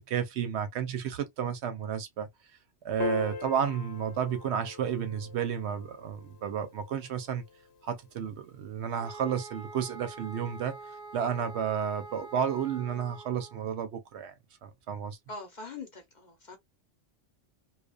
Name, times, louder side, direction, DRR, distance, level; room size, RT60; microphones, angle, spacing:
voice 1, 0.0-2.3 2.8-7.4 7.8-10.8 11.1-14.3 14.6-15.2, right 8 dB, 70° right, 0.8 m, -32 dB
Piano, 3.0-9.6, left 6 dB, 70° left, 1.1 m, -42 dB
sound 1, 9.0-13.7, right 3 dB, 55° right, 0.4 m, -46 dB
voice 2, 15.3-16.6, left 3 dB, 45° left, 0.8 m, -43 dB
2.4 x 2.2 x 2.3 m
omnidirectional pair, 1.3 m